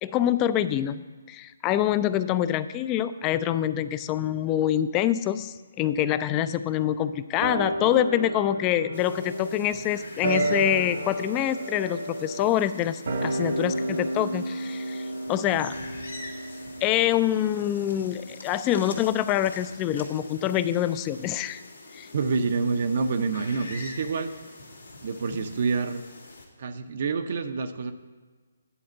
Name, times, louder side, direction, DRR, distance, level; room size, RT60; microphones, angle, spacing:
voice 1, 0.0-1.0 1.3-15.7 16.8-21.6 21.9-22.1, left 11 dB, 20° left, 13 dB, 0.3 m, -26 dB
sound 1, 7.4-18.0 18.3-18.4, right 1 dB, 65° right, 1.4 m, -32 dB
sound 2, 8.9-26.5, left 2 dB, 85° left, 1.8 m, -44 dB
voice 2, 22.1-24.3 25.0-26.0 26.6-27.9, right 4 dB, 50° right, 8 dB, 0.6 m, -27 dB
10.0 x 4.3 x 7.7 m, 1.4 s
figure-of-eight pair, 145°, 0 cm